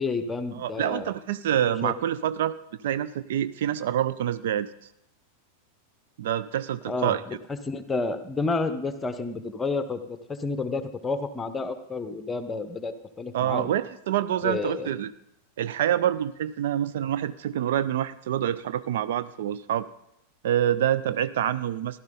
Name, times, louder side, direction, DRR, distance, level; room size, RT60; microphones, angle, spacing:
voice 1, 0.0-1.1 1.7-1.9 6.9-7.4 7.7-13.7 14.4-14.9, left 3 dB, 15° left, 11 dB, 1.0 m, -30 dB
voice 2, 0.6-2.5 2.8-4.7 6.2-7.2 13.3-15.1 15.6-19.9 20.4-22.0, right 11 dB, 55° right, 14 dB, 0.4 m, -26 dB
15.5 x 12.0 x 3.9 m, 0.80 s
figure-of-eight pair, 90°, 0 cm